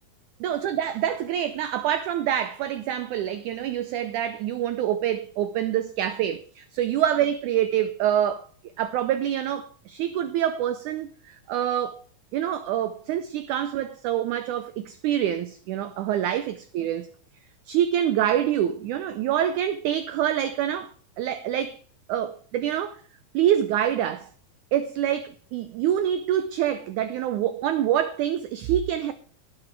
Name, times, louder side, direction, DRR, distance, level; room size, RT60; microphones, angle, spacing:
voice 1, 0.4-8.5 8.8-12.0 12.3-17.1 17.7-20.9 21.2-21.8 22.1-23.0 23.3-24.3 24.7-29.1, right 10 dB, 80° right, 1.8 m, -26 dB
17.0 x 9.0 x 4.5 m
omnidirectional pair, 4.2 m